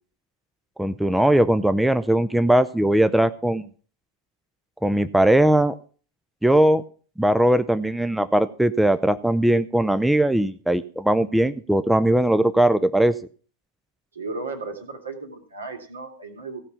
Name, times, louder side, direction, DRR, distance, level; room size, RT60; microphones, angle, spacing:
voice 1, 0.8-3.6 4.8-5.8 6.4-6.8 7.2-13.1, right 1 dB, 5° right, 12 dB, 0.5 m, -19 dB
voice 2, 14.1-16.6, right 3 dB, 75° right, 5 dB, 2.4 m, -35 dB
16.0 x 5.5 x 7.1 m, 0.41 s
figure-of-eight pair, 90°, 0 cm